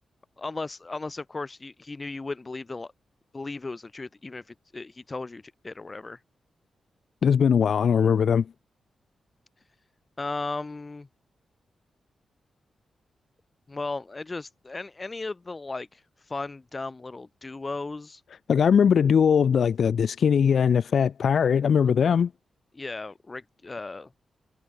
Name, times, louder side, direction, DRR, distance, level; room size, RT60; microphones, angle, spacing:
voice 1, 0.4-2.9 3.3-6.2 10.2-11.1 13.7-18.2 22.7-24.1, left 3 dB, 30° left, 2.9 m, -36 dB
voice 2, 7.2-8.4 18.5-22.3, left 7 dB, 70° left, 0.6 m, -20 dB
cardioid pair, 75°, 0 cm